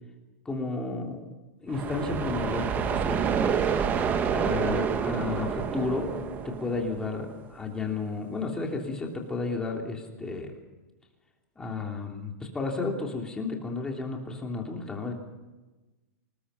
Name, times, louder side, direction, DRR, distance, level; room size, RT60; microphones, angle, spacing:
voice 1, 0.4-1.2 1.6-3.3 4.3-6.1 6.4-10.5 11.6-15.1, left 3 dB, 10° left, 0 dB, 3.2 m, -32 dB
sound 1, 1.7-7.5, right 7 dB, 20° right, 1.1 m, -28 dB
27.0 x 20.5 x 5.8 m, 1.1 s
supercardioid pair, 165°, 9 cm